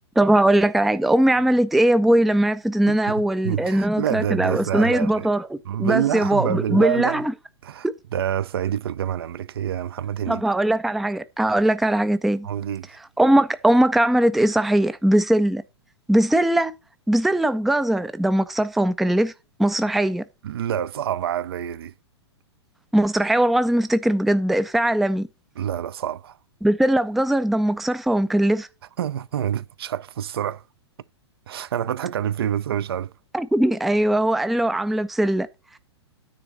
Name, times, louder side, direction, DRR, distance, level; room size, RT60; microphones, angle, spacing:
voice 1, 0.2-7.3 7.8-7.9 10.3-12.5 13.2-15.6 16.1-16.7 17.1-19.3 19.6-20.2 22.9-25.3 26.6-28.7 33.3-35.5, right 1 dB, ahead, 0.4 m, -20 dB
voice 2, 2.9-5.3 5.7-7.2 7.6-10.4 12.4-12.9 20.4-21.9 25.6-26.4 29.0-30.6 31.5-33.1, right 10 dB, 60° right, 0.5 m, -27 dB
9.6 x 3.9 x 7.0 m
figure-of-eight pair, 105°, 14 cm